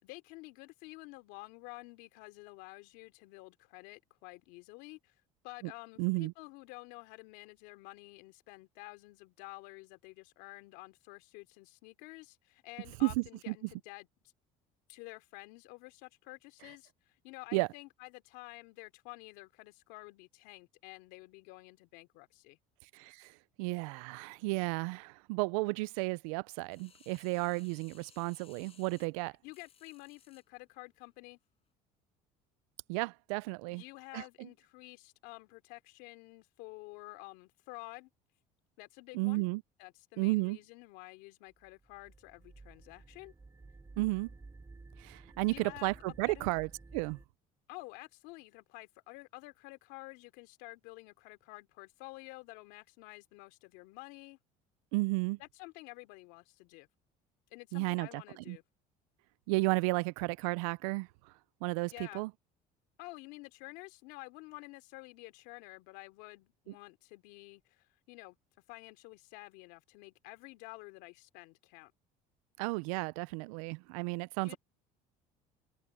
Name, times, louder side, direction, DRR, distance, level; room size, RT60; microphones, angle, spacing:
voice 1, 0.0-5.1 5.4-14.1 14.9-22.6 29.4-31.4 33.7-38.1 38.8-39.4 39.8-43.3 45.4-46.5 47.7-54.4 55.4-56.9 57.5-58.6 61.9-62.2 63.0-68.4 68.7-71.9 74.4-74.6, left 23 dB, 80° left, 3.1 m, -50 dB
voice 2, 6.0-6.3 13.0-13.5 17.5-17.7 22.9-23.3 23.6-29.3 32.9-33.8 34.1-34.5 39.1-39.6 40.2-40.6 44.0-44.3 45.0-47.2 54.9-55.4 57.7-58.2 58.5-58.6 59.5-61.1 61.6-62.3 72.6-74.5, right 25 dB, 85° right, 0.6 m, -33 dB
sound 1, 26.7-30.5 31.0-31.1, left 7 dB, 35° left, 5.3 m, -62 dB
sound 2, 41.5-47.3, right 3 dB, 20° right, 3.0 m, -54 dB
supercardioid pair, 90°, 17 cm